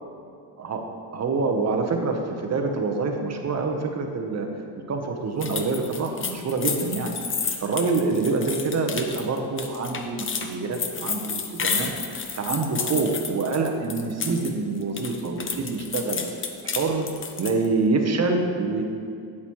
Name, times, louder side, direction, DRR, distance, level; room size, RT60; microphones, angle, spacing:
voice 1, 1.1-4.5 4.9-7.1 7.6-16.2 16.6-17.1 17.4-18.8, right 3 dB, 35° right, 4 dB, 0.9 m, -26 dB
sound 1, 5.4-14.5 14.8-17.7, left 6 dB, 25° left, 0.7 m, -31 dB
8.7 x 8.1 x 3.1 m, 2.4 s
supercardioid pair, 95°, 46 cm